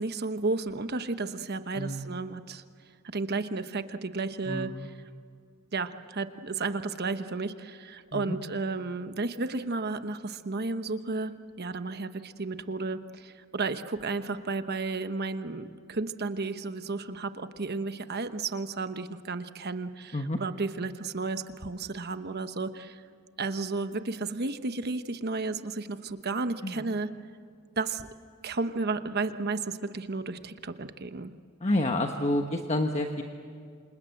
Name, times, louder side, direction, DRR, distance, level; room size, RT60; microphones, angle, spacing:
voice 1, 0.0-2.6 3.1-4.9 5.7-23.0 23.4-27.1 27.8-28.1 28.4-31.3, right 3 dB, 50° right, 10 dB, 1.1 m, -33 dB
voice 2, 4.5-4.9 8.1-8.4 20.1-20.4 26.6-26.9 31.6-33.2, left 1 dB, 30° left, 4 dB, 1.2 m, -29 dB
28.5 x 27.0 x 7.8 m, 2.2 s
head